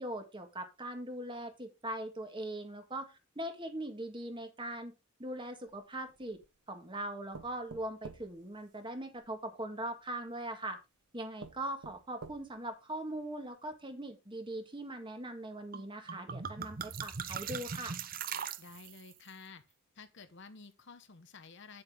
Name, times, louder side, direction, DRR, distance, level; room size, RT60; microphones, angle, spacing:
voice 1, 0.0-4.9 5.2-6.4 6.7-10.8 11.1-18.0, right 1 dB, 20° right, 1.7 m, -41 dB
sound 1, 5.7-6.6 7.3-9.3 10.3-10.4 10.9-11.0 11.4-12.7 13.2-13.3 13.7-13.8, right 3 dB, 90° right, 1.0 m, -51 dB
sound 2, 15.7-15.8 16.1-19.1, right 7 dB, 40° right, 0.6 m, -40 dB
voice 2, 18.6-19.6 19.9-21.8, left 4 dB, 50° left, 1.0 m, -52 dB
9.1 x 7.8 x 3.6 m
head